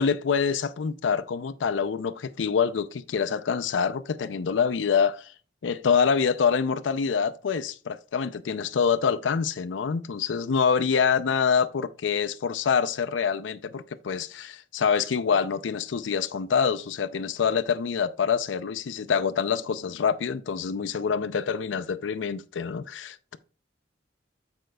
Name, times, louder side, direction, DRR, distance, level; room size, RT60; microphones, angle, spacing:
voice 1, 0.0-5.3 5.6-23.4, left 6 dB, 85° left, 0.4 m, -26 dB
14.0 x 5.1 x 2.3 m
head